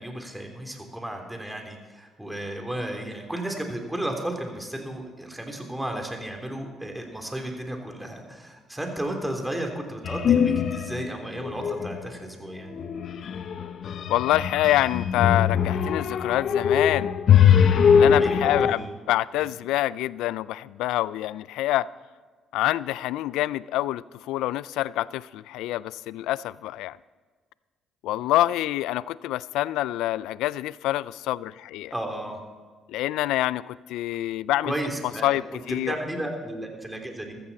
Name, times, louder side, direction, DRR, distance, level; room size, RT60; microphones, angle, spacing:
voice 1, 0.0-12.8 18.1-18.9 31.9-32.4 34.6-35.6 35.8-37.4, right 1 dB, 10° right, 2 dB, 3.1 m, -33 dB
sound 1, 10.0-11.1 11.4-12.0 12.7-18.7, left 8 dB, 60° left, 0.9 m, -21 dB
voice 2, 14.1-17.2 17.9-21.9 22.5-27.0 28.0-31.9 32.9-34.7 35.2-36.0, left 15 dB, 80° left, 20 dB, 0.3 m, -26 dB
14.0 x 14.0 x 4.2 m, 1.5 s
supercardioid pair, 65°, 0 cm